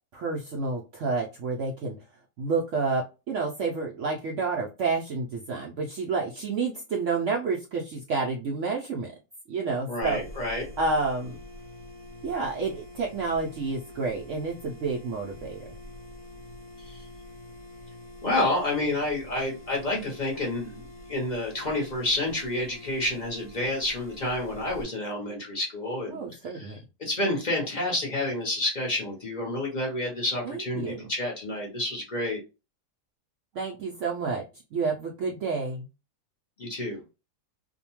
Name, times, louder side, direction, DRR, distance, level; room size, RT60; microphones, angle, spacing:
voice 1, 0.1-2.0 2.4-9.1 9.5-10.2 10.8-11.4 12.2-15.7 26.1-26.8 30.4-31.1 33.5-34.4 34.7-35.9, right 4 dB, 75° right, -1 dB, 0.7 m, -29 dB
voice 2, 9.9-10.7 16.8-17.0 18.2-26.2 26.4-32.4 36.6-37.0, left 1 dB, 40° left, -2 dB, 0.6 m, -29 dB
sound 1, 10.0-24.8, left 1 dB, 65° left, 1.0 m, -45 dB
2.7 x 2.1 x 2.9 m, 0.29 s
omnidirectional pair, 1.8 m